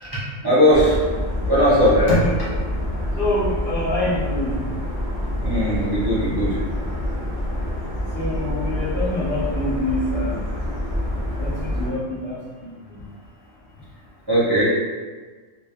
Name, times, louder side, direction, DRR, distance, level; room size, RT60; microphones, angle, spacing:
voice 1, 0.4-1.0 1.5-2.0 5.4-6.5 14.3-14.7, equal, 35° right, -10 dB, 0.3 m, -18 dB
sound 1, 0.7-11.9, left 1 dB, 15° left, 0.8 m, -26 dB
voice 2, 1.9-2.5 3.2-4.6 8.1-10.4 11.4-13.0, left 1 dB, 50° left, -8 dB, 0.7 m, -26 dB
2.9 x 2.4 x 2.3 m, 1.4 s
omnidirectional pair, 1.3 m